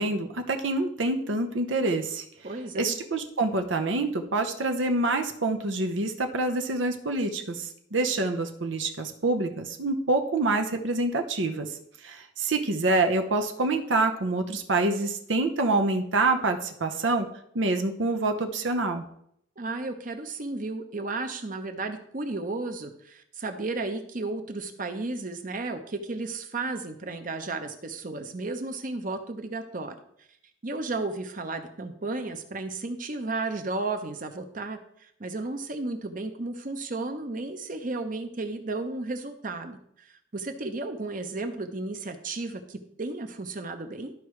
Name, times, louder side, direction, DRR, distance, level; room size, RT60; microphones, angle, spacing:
voice 1, 0.0-2.2 2.7-11.7 12.0-17.3 17.5-19.0, right 2 dB, 85° right, 5 dB, 0.8 m, -26 dB
voice 2, 2.4-2.9 19.6-30.0 30.6-44.1, right 3 dB, 45° right, 7 dB, 0.8 m, -33 dB
13.0 x 4.7 x 3.2 m, 0.71 s
head